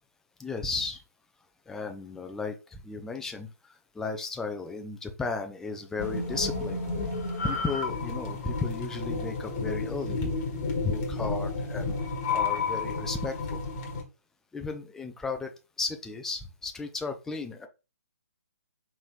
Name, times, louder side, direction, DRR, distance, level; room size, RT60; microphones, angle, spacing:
voice 1, 0.4-1.0 1.7-3.5 4.0-6.8 7.4-10.4 10.8-12.0 12.3-13.6 14.5-15.5 15.8-17.7, left 4 dB, 5° left, 5 dB, 0.4 m, -34 dB
sound 1, 6.0-14.0, left 4 dB, 30° left, 1.2 m, -31 dB
4.7 x 3.0 x 2.4 m, 0.29 s
figure-of-eight pair, 135°, 9 cm